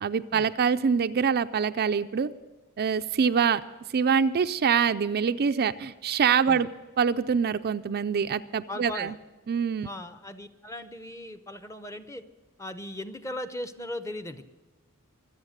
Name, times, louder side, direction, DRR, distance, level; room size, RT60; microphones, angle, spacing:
voice 1, 0.0-2.3 2.8-3.6 3.9-6.7 7.0-9.1 9.5-9.9, right 6 dB, 45° right, 10 dB, 0.4 m, -25 dB
voice 2, 8.7-9.1 9.8-12.2 12.6-14.5, left 1 dB, 15° left, 10 dB, 0.7 m, -38 dB
24.5 x 8.2 x 6.5 m, 1.2 s
head